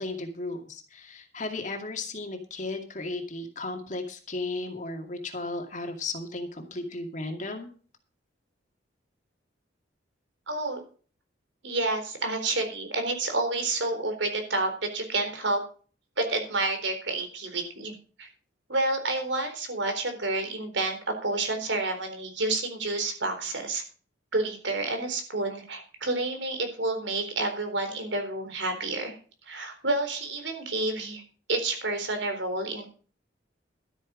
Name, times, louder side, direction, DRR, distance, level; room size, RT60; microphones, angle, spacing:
voice 1, 0.0-7.7, left 2 dB, 40° left, 4 dB, 2.3 m, -35 dB
voice 2, 10.5-10.8 11.6-15.6 16.2-17.9 18.2-18.3 18.7-23.8 24.3-29.2 29.4-31.2 31.5-32.9, right 2 dB, 70° right, 6 dB, 3.9 m, -29 dB
13.0 x 9.1 x 5.0 m, 0.40 s
head